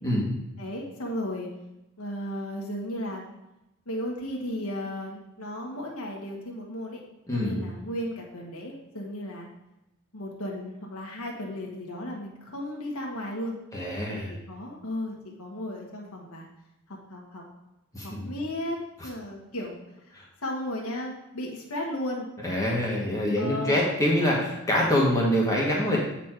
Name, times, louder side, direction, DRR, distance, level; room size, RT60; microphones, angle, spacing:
voice 1, 0.0-0.4 7.3-7.6 13.7-14.3 17.9-18.3 20.1-20.2 22.4-26.0, equal, 15° left, -4 dB, 1.5 m, -25 dB
voice 2, 0.6-1.5 2.0-3.2 3.9-7.0 7.3-9.5 10.1-13.5 14.1-14.2 14.5-16.5 17.1-17.4 18.0-19.7 20.4-22.3 23.4-23.9, left 1 dB, 80° left, -1 dB, 1.5 m, -34 dB
8.2 x 4.3 x 4.5 m, 0.92 s
head